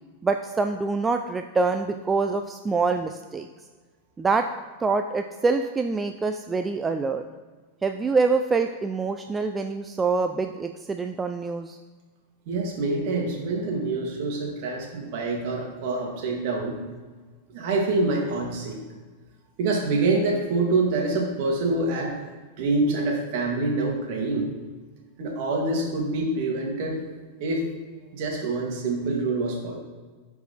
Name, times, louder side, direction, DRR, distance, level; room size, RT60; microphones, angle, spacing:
voice 1, 0.2-3.5 4.2-4.5 4.8-7.2 7.8-11.8, right 4 dB, 15° right, 6 dB, 0.4 m, -25 dB
voice 2, 12.5-16.8 17.5-18.8 19.6-22.1 22.6-24.5 25.2-27.0 27.4-27.6 28.1-29.8, right 3 dB, 55° right, 0 dB, 2.2 m, -26 dB
10.0 x 4.7 x 4.2 m, 1.4 s
figure-of-eight pair, 95°, 0 cm